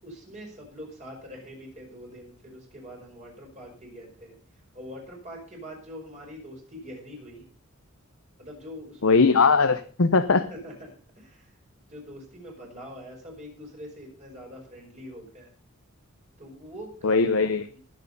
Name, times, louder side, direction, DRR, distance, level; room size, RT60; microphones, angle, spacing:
voice 1, 0.0-4.4 4.7-7.4 8.4-9.2 10.5-11.5 11.9-15.5 16.4-17.2 17.7-17.8, equal, 35° right, -1 dB, 5.3 m, -43 dB
voice 2, 9.0-10.5 17.0-17.7, left 4 dB, 70° left, 9 dB, 0.7 m, -20 dB
19.5 x 6.7 x 5.4 m, 0.40 s
head